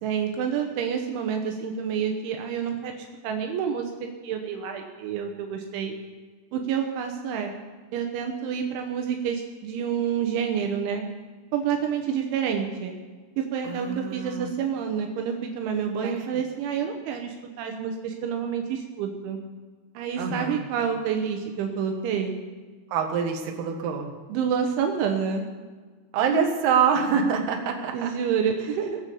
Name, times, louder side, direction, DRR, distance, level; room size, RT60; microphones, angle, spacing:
voice 1, 0.0-3.9 4.2-5.9 6.5-7.5 7.9-11.0 11.5-12.9 13.4-19.4 19.9-22.4 24.3-25.5 27.9-29.0, right 7 dB, 80° right, 3 dB, 3.4 m, -28 dB
voice 2, 13.6-14.5 16.0-16.4 20.2-20.6 22.9-24.1 26.1-28.1, right 6 dB, 65° right, 2 dB, 3.3 m, -25 dB
20.5 x 7.6 x 6.9 m, 1.4 s
omnidirectional pair, 5.4 m